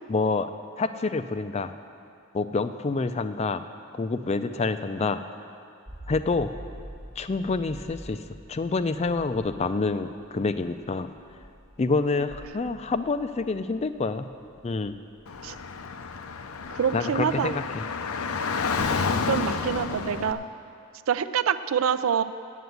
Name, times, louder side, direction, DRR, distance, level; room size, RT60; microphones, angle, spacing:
voice 1, 0.1-0.5 0.8-1.7 2.3-3.6 4.0-5.2 6.1-6.5 7.2-8.2 8.5-11.1 11.8-14.3 14.6-15.0 16.9-17.8 18.8-19.0, left 3 dB, 30° left, 10 dB, 0.4 m, -27 dB
sound 1, 5.8-16.3, equal, 5° right, 0.8 m, -47 dB
Car / Traffic noise roadway noise, 15.3-20.3, left 5 dB, 90° left, 0.6 m, -30 dB
voice 2, 16.7-17.6 19.3-20.4 21.1-22.2, right 7 dB, 75° right, 12 dB, 0.4 m, -26 dB
9.3 x 8.0 x 8.0 m, 2.5 s
head